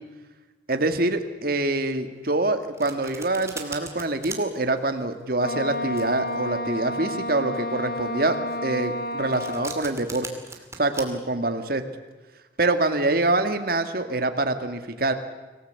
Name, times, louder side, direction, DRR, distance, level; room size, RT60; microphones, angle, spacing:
voice 1, 0.7-10.3 10.8-11.8 12.6-15.1, right 2 dB, 55° right, 8 dB, 1.8 m, -25 dB
Domestic sounds home sounds, 2.3-11.0, right 4 dB, 15° right, 2.5 m, -40 dB
Wind instrument woodwind instrument, 5.3-9.9, left 1 dB, 55° left, 1.9 m, -31 dB
25.0 x 17.5 x 8.2 m, 1.2 s
head